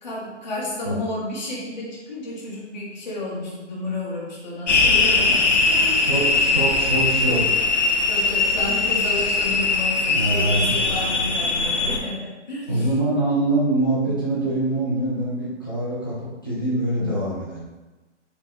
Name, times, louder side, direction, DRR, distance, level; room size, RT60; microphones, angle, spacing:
voice 1, 0.0-6.1 6.6-7.0 8.1-12.9, left 2 dB, 40° left, -5 dB, 0.8 m, -32 dB
sound 1, 4.7-12.0, left 3 dB, 75° left, 0.7 m, -20 dB
voice 2, 6.1-7.4 10.1-10.7 12.7-17.6, right 2 dB, 20° left, -9 dB, 0.5 m, -24 dB
3.4 x 3.4 x 2.4 m, 1.2 s
hypercardioid pair, 175°, 36 cm